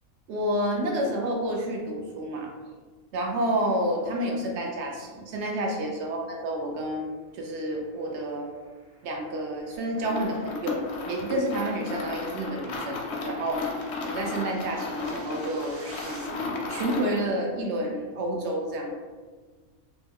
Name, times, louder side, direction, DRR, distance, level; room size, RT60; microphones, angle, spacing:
voice 1, 0.3-2.5 3.1-7.1 7.3-8.5 9.0-13.7 14.0-18.9, right 1 dB, 65° right, 1 dB, 0.8 m, -29 dB
sound 1, 7.4-16.3, equal, 20° right, 0.4 m, -51 dB
sound 2, 9.9-17.3, left 3 dB, 65° left, 0.7 m, -34 dB
3.0 x 2.2 x 3.4 m, 1.5 s
omnidirectional pair, 1.4 m